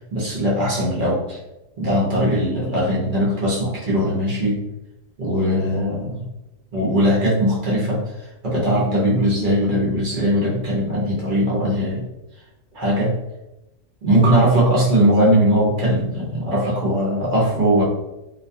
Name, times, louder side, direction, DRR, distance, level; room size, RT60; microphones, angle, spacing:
voice 1, 0.1-1.4 1.8-4.6 5.2-6.3 6.7-8.1 8.4-12.1 12.7-13.1 14.0-17.8, equal, 50° right, -6 dB, 0.7 m, -20 dB
2.5 x 2.2 x 2.6 m, 0.96 s
omnidirectional pair, 1.4 m